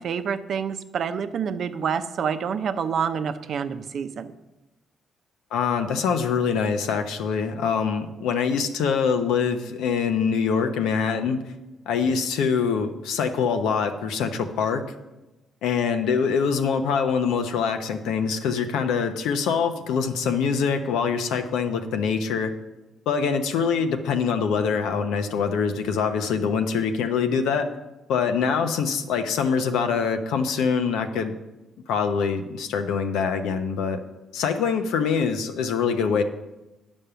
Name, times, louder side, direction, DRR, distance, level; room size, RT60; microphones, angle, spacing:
voice 1, 0.0-4.3, right 7 dB, 60° right, 9 dB, 0.6 m, -27 dB
voice 2, 5.5-11.4 11.9-14.8 15.6-22.5 23.1-27.7 28.1-31.3 31.9-34.0 34.3-36.2, left 6 dB, 90° left, 7 dB, 0.8 m, -24 dB
10.0 x 5.4 x 6.8 m, 1.0 s
cardioid pair, 90°, 0 cm